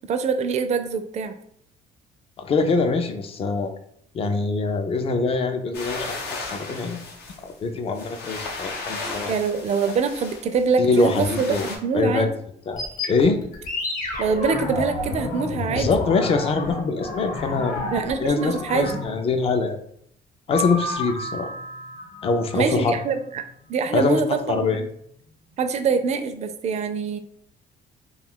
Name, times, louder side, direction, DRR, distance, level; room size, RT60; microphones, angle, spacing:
voice 1, 0.1-1.4 9.2-12.3 14.2-15.9 17.7-18.9 22.5-23.4 23.7-24.9 25.6-27.2, right 5 dB, 40° right, 7 dB, 0.4 m, -24 dB
voice 2, 2.4-3.7 4.1-7.0 7.4-9.3 10.8-11.7 11.9-12.3 12.7-12.8 13.1-13.4 15.7-17.8 18.2-19.8 20.5-21.5 22.2-23.0 23.9-24.2 24.5-24.8, left 4 dB, 35° left, 7 dB, 0.4 m, -23 dB
sound 1, 5.7-11.8, left 3 dB, 75° left, 0.7 m, -35 dB
sound 2, 12.7-19.3 20.5-23.1, left 2 dB, 50° left, 0.9 m, -31 dB
2.3 x 2.3 x 3.5 m, 0.67 s
cardioid pair, 110°, 17 cm